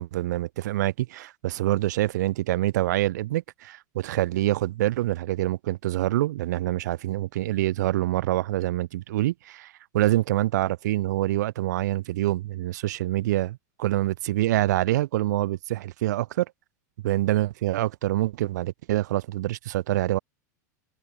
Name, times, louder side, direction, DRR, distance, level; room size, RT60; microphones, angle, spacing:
voice 1, 0.0-16.4 17.0-20.2, right 15 dB, 75° right, 1.2 m, -26 dB
hypercardioid pair, 110°, 10 cm